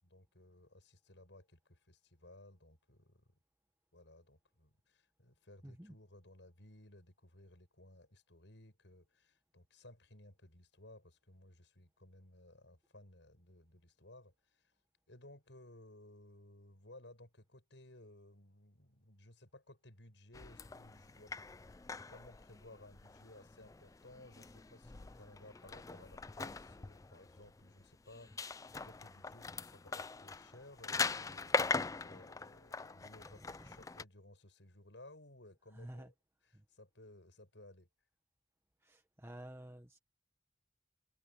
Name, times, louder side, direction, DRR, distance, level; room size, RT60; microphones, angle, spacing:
voice 1, 0.0-3.2 3.9-14.7 15.1-21.3 22.1-36.1 36.7-37.9, left 1 dB, 85° left, 6.4 m, -59 dB
voice 2, 5.6-6.0 33.4-33.7 35.7-36.1 36.5-36.6 38.8-40.0, right 1 dB, 15° right, 1.2 m, -51 dB
sound 1, 20.3-34.0, left 4 dB, 20° left, 0.4 m, -42 dB
head